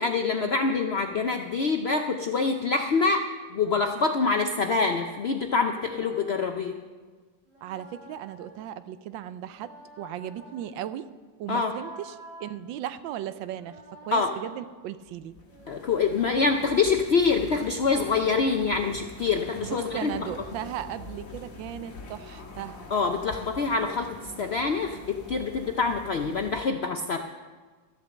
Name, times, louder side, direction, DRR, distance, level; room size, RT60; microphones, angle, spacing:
voice 1, 0.0-3.2 3.5-6.8 11.5-11.7 14.1-14.3 15.7-20.3 22.9-24.1 24.4-27.2, left 4 dB, 90° left, 4 dB, 0.5 m, -25 dB
sound 1, 3.5-4.5 5.4-6.4 7.5-8.7 9.5-10.7 11.5-12.5 13.5-14.6 15.5-16.8 17.5-18.5 19.4-20.9, right 1 dB, 65° right, 3.7 m, -50 dB
voice 2, 7.6-9.7 10.0-11.1 11.4-15.4 19.6-22.8, right 11 dB, 90° right, 13 dB, 1.4 m, -36 dB
sound 2, 15.1-26.7, left 2 dB, 45° left, 2.0 m, -44 dB
13.0 x 8.2 x 7.1 m, 1.4 s
omnidirectional pair, 2.0 m